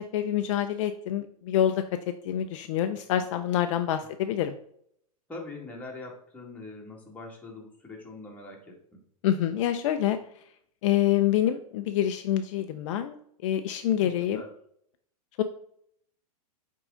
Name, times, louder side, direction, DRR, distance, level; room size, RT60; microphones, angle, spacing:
voice 1, 0.0-1.8 2.2-4.5 9.2-10.2 10.8-13.2 13.4-14.4 15.4-15.5, left 11 dB, 55° left, 8 dB, 0.5 m, -26 dB
voice 2, 5.3-9.0 13.9-14.5, left 2 dB, 10° left, -2 dB, 2.0 m, -43 dB
8.8 x 3.8 x 3.8 m, 0.68 s
hypercardioid pair, 115°, 19 cm